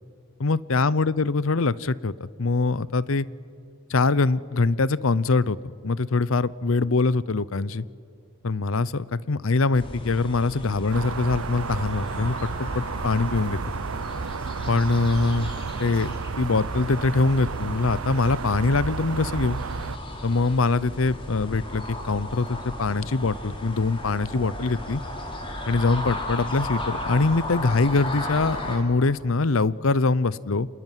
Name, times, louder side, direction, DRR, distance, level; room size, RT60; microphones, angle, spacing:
voice 1, 0.4-3.3 3.9-5.6 5.8-7.8 8.4-13.6 14.7-15.5 15.8-19.6 20.2-25.0 25.7-30.7, left 3 dB, 75° left, 19 dB, 0.7 m, -23 dB
sound 1, 9.7-28.8, left 1 dB, 25° left, 3.9 m, -35 dB
sound 2, 10.9-20.0, right 5 dB, 85° right, 0.7 m, -32 dB
27.5 x 20.5 x 9.3 m, 2.3 s
head